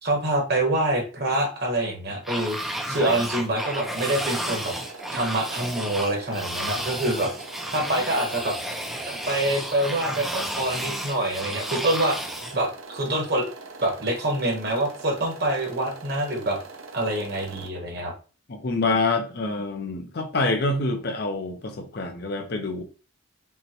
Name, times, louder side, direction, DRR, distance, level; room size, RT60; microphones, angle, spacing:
voice 1, 0.0-4.7 5.1-7.3 7.7-8.5 9.0-12.2 12.5-13.5 13.8-16.6 16.9-18.1, right 1 dB, 50° right, 1.2 m, -26 dB
sound 1, 2.2-12.6, equal, ahead, 0.4 m, -32 dB
sound 2, 3.5-17.7, right 3 dB, 85° right, 0.7 m, -43 dB
voice 2, 18.5-22.8, left 3 dB, 50° left, 0.5 m, -26 dB
5.4 x 2.2 x 2.9 m
head